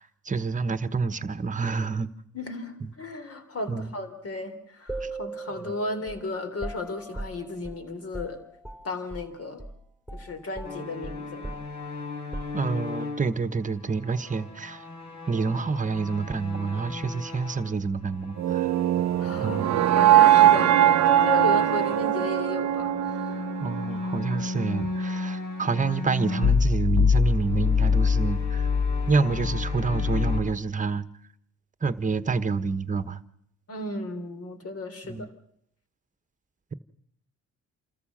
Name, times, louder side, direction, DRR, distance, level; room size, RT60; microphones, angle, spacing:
voice 1, 0.0-2.1 3.7-3.9 5.0-5.1 12.5-14.8 15.3-18.7 19.4-19.7 23.6-28.7 29.1-31.0 31.8-33.2 35.0-35.3, right 4 dB, 25° right, 12 dB, 1.2 m, -28 dB
voice 2, 2.3-8.4 8.8-9.6 10.1-11.5 19.2-23.4 33.7-35.3, left 2 dB, 50° left, 9 dB, 3.5 m, -34 dB
sound 1, 4.9-9.3 9.6-9.8 10.1-13.1, right 2 dB, 10° left, 3.8 m, -40 dB
sound 2, 10.6-17.7 18.0-22.2 22.7-30.4, left 5 dB, 65° left, 4.1 m, -29 dB
sound 3, 18.4-24.5, right 12 dB, 65° right, 0.8 m, -21 dB
27.5 x 14.0 x 7.3 m, 0.71 s
cardioid pair, 90°, 30 cm